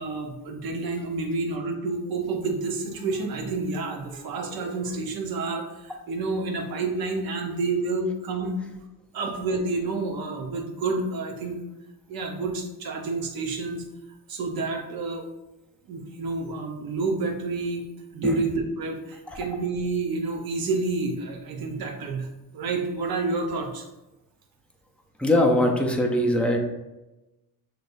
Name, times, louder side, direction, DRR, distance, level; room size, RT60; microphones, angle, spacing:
voice 1, 0.0-8.6 9.1-11.6 12.1-13.8 14.3-15.3 15.9-17.9 18.1-23.9, right 3 dB, 65° right, 2 dB, 0.9 m, -29 dB
voice 2, 25.2-26.6, left 1 dB, 5° left, 0 dB, 0.4 m, -21 dB
6.5 x 3.1 x 2.6 m, 1.0 s
cardioid pair, 145°, 39 cm